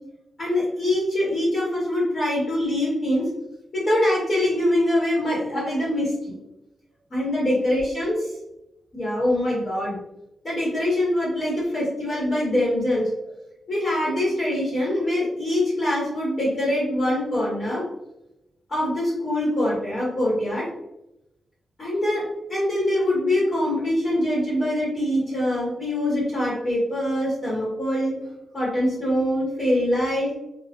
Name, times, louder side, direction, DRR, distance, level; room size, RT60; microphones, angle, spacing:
voice 1, 0.4-3.3 3.7-6.4 7.1-8.3 8.9-10.0 10.4-13.1 13.7-17.8 18.7-20.7 21.8-22.2 22.5-28.1 28.5-30.3, left 1 dB, 35° left, -8 dB, 1.5 m, -24 dB
3.6 x 2.6 x 2.5 m, 0.86 s
wide cardioid pair, 135°, 0 cm